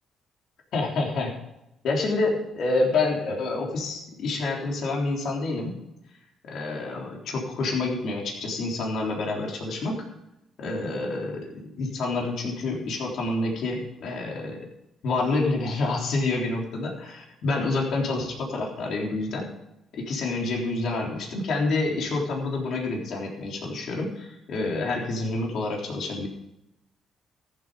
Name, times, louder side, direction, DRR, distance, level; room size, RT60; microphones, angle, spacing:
voice 1, 0.7-1.4 1.8-5.7 6.5-10.0 10.6-14.6 15.0-19.5 19.9-26.3, left 3 dB, 70° left, -1 dB, 3.7 m, -28 dB
14.5 x 8.6 x 5.1 m, 0.87 s
cardioid pair, 90°, 0 cm